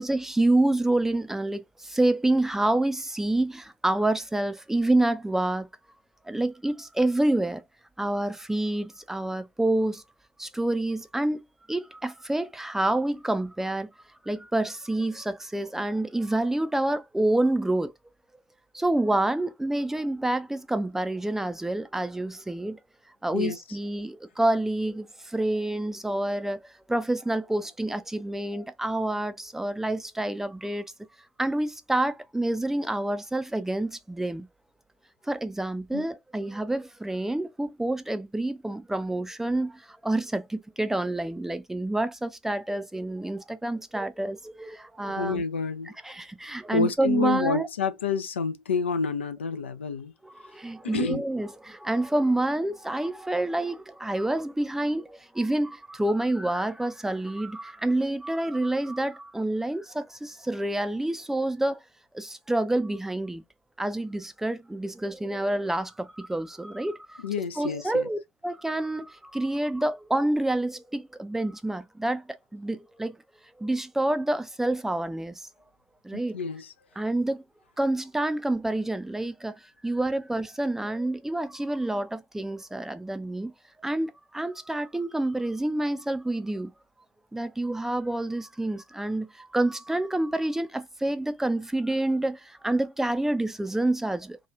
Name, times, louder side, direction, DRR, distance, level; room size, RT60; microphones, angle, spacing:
voice 1, 0.0-5.7 6.3-7.6 8.0-10.0 10.4-11.4 11.7-13.9 14.2-17.9 18.7-22.8 23.2-30.8 31.4-34.5 35.2-45.4 46.0-47.7 50.2-61.8 62.1-63.4 63.8-67.2 67.6-73.2 73.6-75.5 76.0-76.4 77.0-77.4 77.8-83.5 83.8-86.7 87.3-94.4, right 1 dB, 5° right, 0.4 m, -28 dB
voice 2, 23.3-23.8 35.9-36.0 45.1-45.9 46.7-50.1 50.8-51.2 67.2-68.1 76.1-76.7, left 5 dB, 80° left, 0.3 m, -29 dB
2.9 x 2.2 x 2.3 m
figure-of-eight pair, 65°, 6 cm